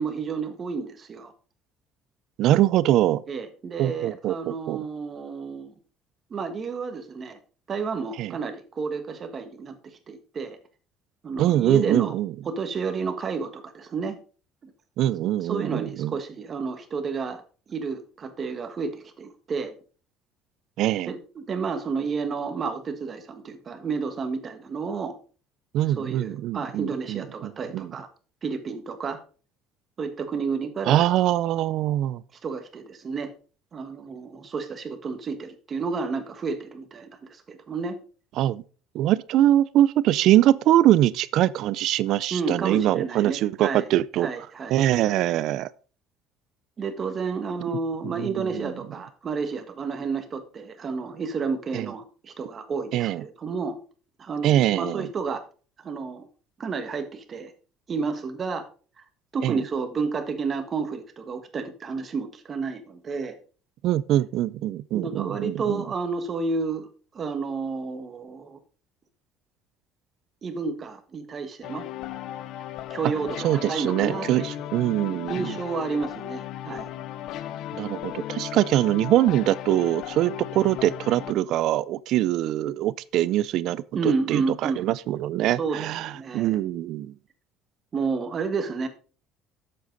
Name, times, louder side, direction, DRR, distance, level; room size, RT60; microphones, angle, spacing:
voice 1, 0.0-1.3 3.3-5.7 6.3-7.4 7.7-10.6 11.2-12.2 12.4-14.2 14.6-14.7 15.4-17.4 17.7-19.7 21.1-25.2 25.8-28.1 28.4-29.2 30.0-31.1 32.4-33.3 33.7-38.0 42.3-43.9 44.2-44.8 46.8-53.8 54.2-55.4 55.8-56.3 56.6-57.5 57.9-58.6 59.0-59.1 59.3-63.4 64.9-66.9 67.1-68.6 70.4-71.9 72.9-74.6 75.3-76.9 82.7-82.8 83.9-84.9 85.6-86.6 87.9-88.9, right 4 dB, 30° right, 1.5 m, -31 dB
voice 2, 2.4-3.2 3.8-4.8 8.2-8.3 11.4-12.3 15.0-16.1 20.8-21.1 25.7-27.9 30.9-32.2 38.4-38.6 38.9-44.3 44.7-45.7 48.0-48.7 51.7-51.9 52.9-53.2 54.4-55.1 59.4-59.6 63.8-65.8 73.4-75.5 77.7-87.1, right 13 dB, 60° right, 0.4 m, -23 dB
sound 1, 71.6-81.3, left 12 dB, 60° left, 0.6 m, -36 dB
11.5 x 7.8 x 3.9 m
cardioid pair, 140°, 0 cm